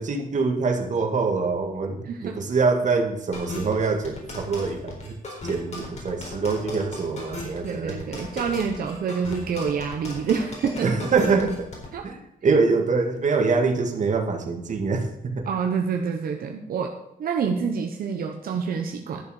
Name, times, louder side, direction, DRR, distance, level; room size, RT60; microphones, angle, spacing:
voice 1, 0.0-5.1 5.4-8.0 10.8-11.7 12.0-15.0 15.4-15.5, right 4 dB, 55° right, 4 dB, 2.0 m, -24 dB
voice 2, 2.0-2.4 7.6-10.9 11.9-12.1 15.4-16.9 17.2-19.2, right 6 dB, 85° right, 3 dB, 1.1 m, -27 dB
sound 1, 3.3-11.9, left 2 dB, 50° left, 4.0 m, -36 dB
12.0 x 7.0 x 6.5 m, 0.82 s
cardioid pair, 115°, 15 cm